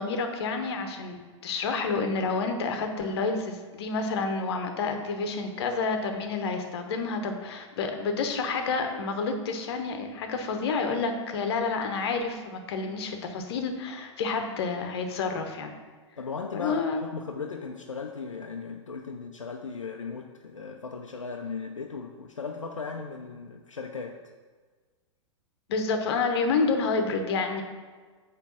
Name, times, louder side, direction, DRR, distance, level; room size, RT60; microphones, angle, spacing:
voice 1, 0.0-15.7 16.5-17.0 25.7-27.6, left 4 dB, 55° left, 5 dB, 1.0 m, -29 dB
voice 2, 16.2-24.2, left 5 dB, 80° left, 2 dB, 0.6 m, -37 dB
9.0 x 3.3 x 6.1 m, 1.4 s
figure-of-eight pair, 100°, 16 cm